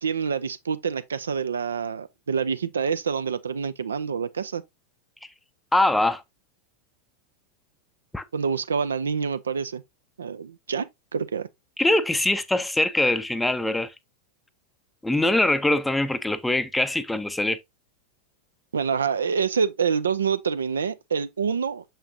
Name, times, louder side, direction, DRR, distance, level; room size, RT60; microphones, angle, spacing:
voice 1, 0.0-4.6 8.3-9.8 10.2-11.5 18.7-21.8, right 6 dB, 70° right, 0.5 m, -27 dB
voice 2, 5.7-6.2 8.1-8.2 11.8-13.9 15.0-17.6, left 1 dB, 5° left, 0.6 m, -23 dB
6.8 x 5.7 x 2.7 m
figure-of-eight pair, 90°, 0 cm